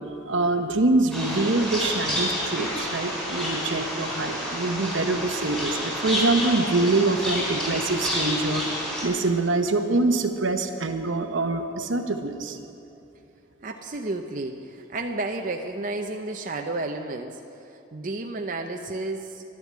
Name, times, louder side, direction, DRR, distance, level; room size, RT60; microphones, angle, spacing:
voice 1, 0.3-8.7 9.0-12.6, right 2 dB, 75° right, 6 dB, 1.0 m, -25 dB
sound 1, 1.1-9.0, equal, 5° left, 4.1 m, -29 dB
voice 2, 13.6-19.4, right 2 dB, 40° right, 3 dB, 0.7 m, -32 dB
12.0 x 11.5 x 8.6 m, 2.7 s
head